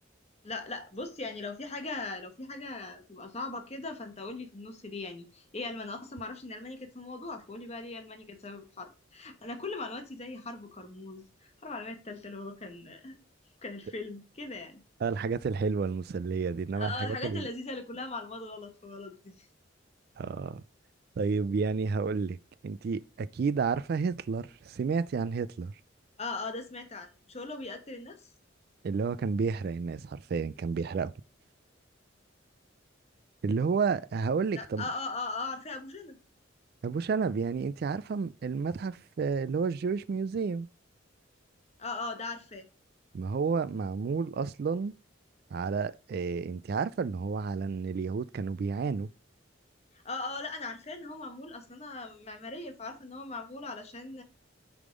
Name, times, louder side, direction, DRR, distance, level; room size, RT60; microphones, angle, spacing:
voice 1, 0.4-13.2 13.6-14.8 16.7-19.5 26.2-28.3 34.5-36.2 41.8-42.7 50.0-54.2, left 3 dB, 35° left, 1.1 m, -39 dB
voice 2, 15.0-17.5 20.2-20.6 21.2-22.4 22.6-25.7 28.8-31.1 33.4-34.9 36.8-40.7 43.1-44.9 45.5-49.1, right 5 dB, 55° right, 0.3 m, -31 dB
6.7 x 3.6 x 5.0 m
head